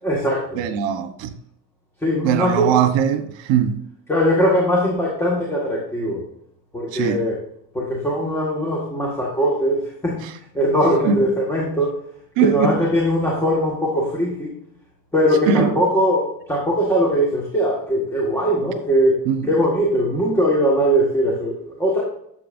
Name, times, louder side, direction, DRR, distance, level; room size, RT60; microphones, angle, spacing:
voice 1, 0.0-0.6 2.0-2.8 4.1-6.2 6.7-7.5 7.7-10.2 10.5-11.9 12.4-14.6 15.1-19.2 19.4-22.0, equal, 5° left, 1.8 m, -20 dB
voice 2, 0.6-1.3 2.2-3.8 6.9-7.2 11.0-11.2 12.4-12.8 15.5-15.7 19.3-19.5, right 8 dB, 80° right, 1.2 m, -20 dB
11.0 x 7.5 x 2.6 m
cardioid pair, 145°, 44 cm